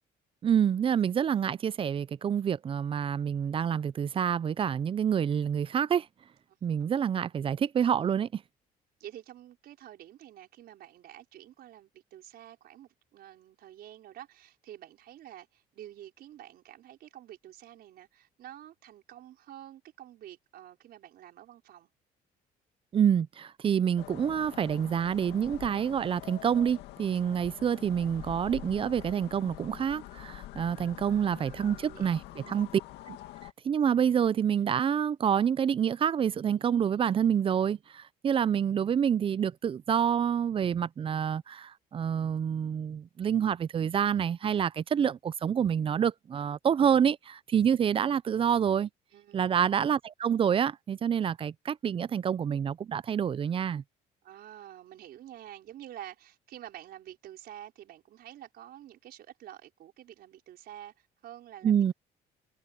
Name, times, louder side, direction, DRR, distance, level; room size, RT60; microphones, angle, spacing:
voice 1, 0.4-6.1 6.6-8.4 22.9-32.7 33.1-33.2 33.6-48.9 49.3-53.8 61.6-61.9, right 8 dB, 30° right, 0.4 m, -27 dB
voice 2, 9.0-21.9 31.1-32.6 49.1-49.4 54.2-61.9, right 12 dB, 65° right, 4.8 m, -49 dB
sound 1, 24.0-33.5, left 15 dB, 90° left, 2.2 m, -46 dB
cardioid pair, 110°, 17 cm